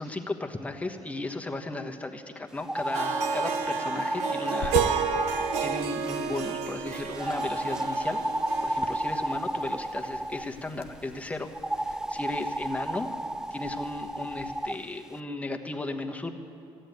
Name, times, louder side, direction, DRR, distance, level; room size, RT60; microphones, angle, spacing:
voice 1, 0.0-4.8 5.2-5.3 5.6-8.3 8.6-13.1 13.5-16.3, left 2 dB, 10° left, 3 dB, 1.3 m, -35 dB
sound 1, 2.6-6.5 7.2-10.5 11.5-14.8, right 1 dB, 5° right, 0.4 m, -32 dB
Harp, 2.9-10.1, right 8 dB, 85° right, 0.8 m, -32 dB
sound 2, 4.6-14.7, left 6 dB, 60° left, 0.9 m, -44 dB
14.0 x 8.9 x 9.4 m, 2.6 s
supercardioid pair, 75°, 11 cm